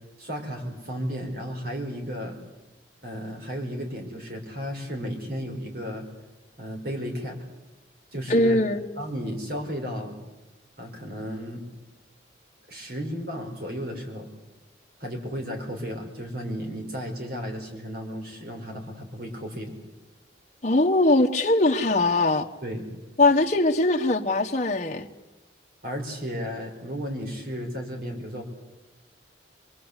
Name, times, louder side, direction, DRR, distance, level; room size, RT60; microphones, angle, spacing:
voice 1, 0.2-2.4 3.0-6.1 6.6-7.4 8.1-8.6 9.0-10.2 10.8-11.6 12.7-14.3 15.0-19.7 22.6-22.9 25.8-28.4, equal, 50° right, 4.9 m, -34 dB
voice 2, 8.3-8.8 20.6-22.5 23.2-25.1, left 2 dB, 35° left, 1.2 m, -21 dB
24.5 x 23.5 x 8.2 m
head